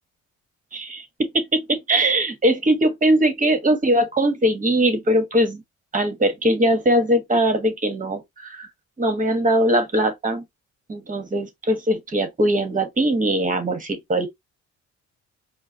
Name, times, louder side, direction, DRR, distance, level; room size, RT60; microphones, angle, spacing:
voice 1, 0.7-5.6 5.9-8.7 9.0-10.4 10.9-14.3, right 1 dB, 25° right, 1.2 m, -21 dB
4.5 x 2.1 x 2.7 m
cardioid pair, 90°, 30 cm